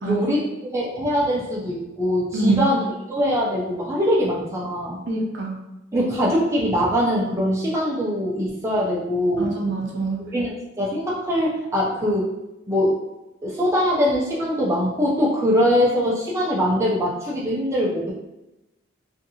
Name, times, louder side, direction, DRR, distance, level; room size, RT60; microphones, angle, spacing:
voice 1, 0.0-5.0 5.9-9.5 10.2-12.3 12.7-13.0 13.4-18.1, equal, 15° right, -5 dB, 0.4 m, -22 dB
voice 2, 2.3-2.7 5.1-5.6 9.4-10.2, right 3 dB, 60° right, -2 dB, 0.6 m, -24 dB
2.6 x 2.5 x 2.7 m, 0.94 s
head